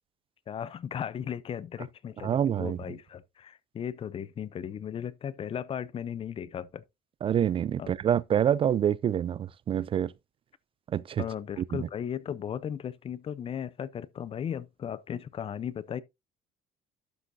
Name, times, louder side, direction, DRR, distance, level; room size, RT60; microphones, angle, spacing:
voice 1, 0.5-6.8 7.8-7.9 11.2-16.0, left 8 dB, 40° left, 0.6 m, -36 dB
voice 2, 2.2-2.8 7.2-10.1 10.9-11.2 11.8-11.9, right 9 dB, 35° right, 0.4 m, -26 dB
12.0 x 6.4 x 2.6 m
cardioid pair, 115°, 15 cm